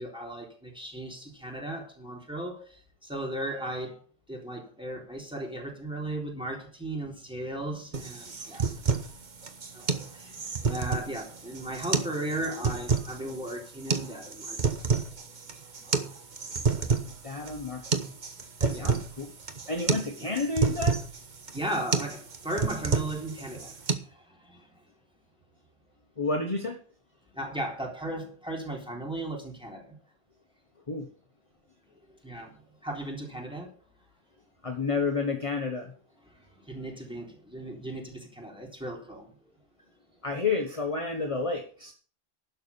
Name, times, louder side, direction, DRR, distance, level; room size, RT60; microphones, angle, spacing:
voice 1, 0.0-4.0 4.3-8.7 9.7-14.6 18.7-19.0 20.2-20.3 21.5-24.8 27.3-29.9 32.2-32.5 32.8-33.7 36.2-39.3, right 1 dB, 5° right, 3.8 m, -36 dB
sound 1, 7.9-23.9, right 5 dB, 50° right, 1.3 m, -30 dB
voice 2, 17.2-17.8 18.6-19.3 19.7-21.0 26.2-26.8 30.9-31.1 34.6-35.9 40.2-41.9, left 3 dB, 35° left, 1.3 m, -30 dB
11.5 x 6.9 x 6.9 m
omnidirectional pair, 1.0 m